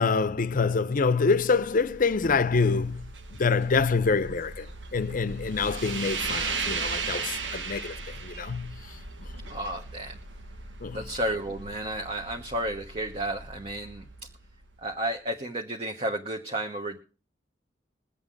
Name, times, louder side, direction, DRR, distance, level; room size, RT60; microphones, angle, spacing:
voice 1, 0.0-3.1 3.4-4.7 4.9-8.0 8.2-8.8 10.8-11.0, left 4 dB, 50° left, 0.6 m, -26 dB
sound 1, 0.9-15.1, right 4 dB, 90° right, 1.3 m, -37 dB
voice 2, 9.5-10.2 10.9-14.0 14.8-17.0, right 1 dB, 35° right, 1.2 m, -32 dB
22.0 x 8.2 x 3.9 m
head